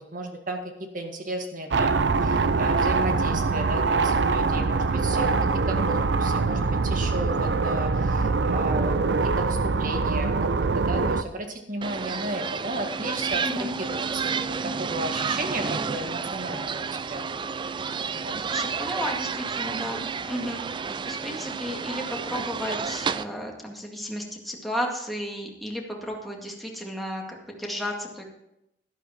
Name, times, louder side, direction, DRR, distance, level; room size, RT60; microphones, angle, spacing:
voice 1, 0.0-5.4 5.7-9.0 9.4-16.8 17.1-17.3 18.1-18.4, right 1 dB, 50° right, 4 dB, 1.9 m, -34 dB
sound 1, 1.7-11.2, right 4 dB, 70° right, 0.6 m, -23 dB
sound 2, 11.8-23.2, right 5 dB, 25° right, 0.3 m, -31 dB
voice 2, 13.4-13.7 18.5-20.6 21.0-28.3, equal, ahead, -1 dB, 2.0 m, -33 dB
11.5 x 11.5 x 4.3 m, 0.84 s
head